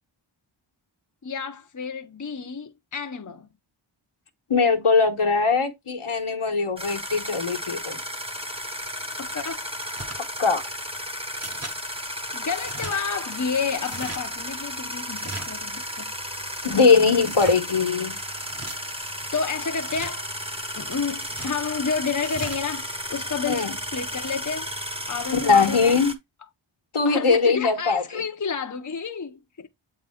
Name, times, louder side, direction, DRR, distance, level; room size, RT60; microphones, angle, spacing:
voice 1, 1.2-3.5 9.2-9.7 12.3-16.2 19.3-20.2 20.8-24.7 25.1-26.0 27.0-29.7, left 5 dB, 35° left, 0.7 m, -30 dB
voice 2, 4.5-8.0 10.4-10.6 16.6-18.2 23.5-23.7 25.3-26.1 26.9-28.2, left 4 dB, 80° left, 1.2 m, -21 dB
sound 1, 6.8-26.1, equal, 10° right, 1.1 m, -34 dB
sound 2, 9.9-10.2 11.4-11.8 12.5-13.0 13.8-14.2 15.1-15.7 17.2-17.6 18.4-18.8 19.8-20.2 21.2-21.6 22.2-22.6, right 2 dB, 30° right, 1.2 m, -38 dB
7.9 x 3.8 x 3.5 m
wide cardioid pair, 55°, 50 cm